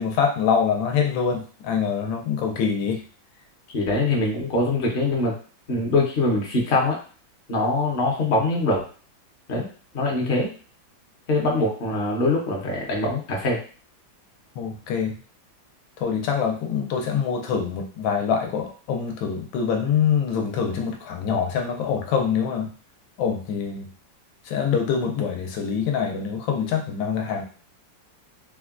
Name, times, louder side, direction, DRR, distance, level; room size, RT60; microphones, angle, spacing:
voice 1, 0.0-3.0 14.6-15.2 16.0-22.7 23.2-23.9 24.5-27.4, left 6 dB, 80° left, 3 dB, 1.3 m, -25 dB
voice 2, 3.7-5.3 5.7-7.0 7.5-8.8 9.5-9.7 9.9-10.5 11.3-13.6, left 2 dB, 50° left, -2 dB, 0.6 m, -23 dB
3.6 x 2.1 x 2.4 m, 0.40 s
omnidirectional pair, 2.1 m